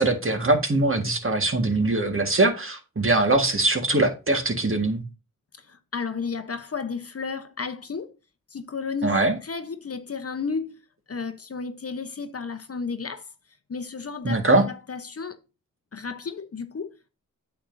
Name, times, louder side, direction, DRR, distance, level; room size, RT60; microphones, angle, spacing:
voice 1, 0.0-5.0 9.0-9.4 14.2-14.6, right 2 dB, 40° right, 1.7 m, -22 dB
voice 2, 5.6-8.1 8.5-10.7 11.1-13.3 13.7-15.4 15.9-17.1, left 5 dB, 45° left, 0.8 m, -33 dB
8.6 x 7.1 x 2.7 m
cardioid pair, 50°, 34 cm